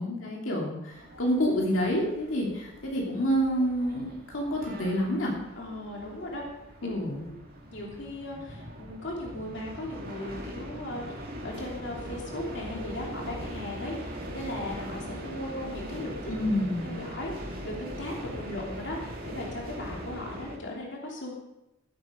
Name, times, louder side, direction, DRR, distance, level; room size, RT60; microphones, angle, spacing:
voice 1, 0.0-5.3 6.8-7.2 16.3-16.9, equal, 90° left, -2 dB, 2.9 m, -28 dB
sound 1, 0.9-20.6, equal, 50° right, 2.3 m, -41 dB
voice 2, 5.6-6.4 7.2-7.3 7.7-16.3 16.6-21.3, left 1 dB, 65° left, -2 dB, 3.0 m, -38 dB
16.5 x 8.3 x 5.1 m, 0.91 s
head